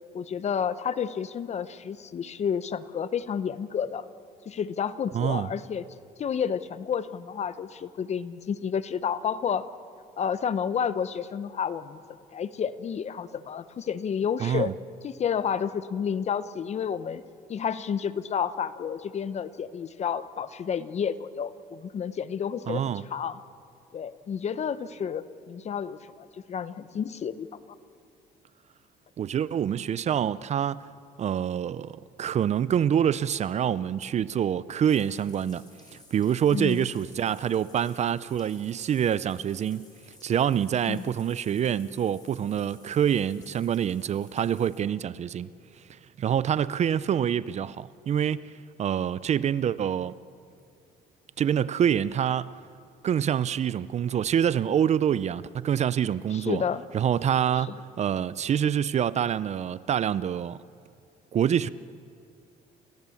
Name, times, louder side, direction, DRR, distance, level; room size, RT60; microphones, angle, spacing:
voice 1, 0.1-4.0 4.5-5.8 6.2-9.6 10.2-12.0 12.3-14.7 15.0-17.2 17.5-23.4 23.9-27.5 36.5-36.9 40.9-41.1 56.3-56.8, left 7 dB, 40° left, 0.8 m, -30 dB
voice 2, 5.1-5.5 14.4-14.7 22.7-23.1 29.2-30.8 31.2-35.6 36.1-39.9 40.2-45.5 46.2-48.5 48.8-50.1 51.4-52.5 53.0-56.6 56.9-60.6 61.3-61.7, right 9 dB, 40° right, 0.5 m, -26 dB
Bathtub (filling or washing), 34.7-44.8, left 3 dB, 25° left, 5.2 m, -56 dB
28.5 x 16.0 x 7.1 m
cardioid pair, 110°, 17 cm